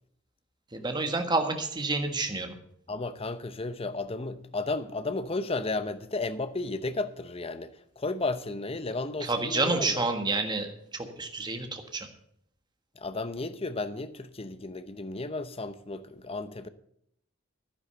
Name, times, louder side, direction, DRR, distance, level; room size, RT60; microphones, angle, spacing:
voice 1, 0.7-2.6 9.2-12.1, right 3 dB, 20° right, 1.5 m, -29 dB
voice 2, 2.9-10.0 13.0-16.7, left 3 dB, 30° left, 0.7 m, -33 dB
11.0 x 10.0 x 6.8 m
head